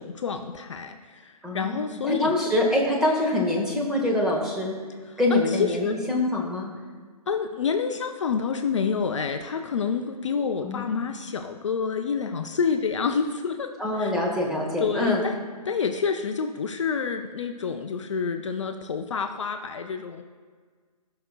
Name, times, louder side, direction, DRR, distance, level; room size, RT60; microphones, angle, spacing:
voice 1, 0.0-2.5 5.1-6.0 7.3-14.1 14.8-20.2, left 6 dB, 50° left, 6 dB, 0.5 m, -28 dB
voice 2, 1.4-4.7 5.2-6.7 10.6-10.9 13.8-15.2, left 1 dB, 5° right, -3 dB, 1.0 m, -25 dB
15.0 x 5.8 x 2.3 m, 1.6 s
figure-of-eight pair, 135°, 20 cm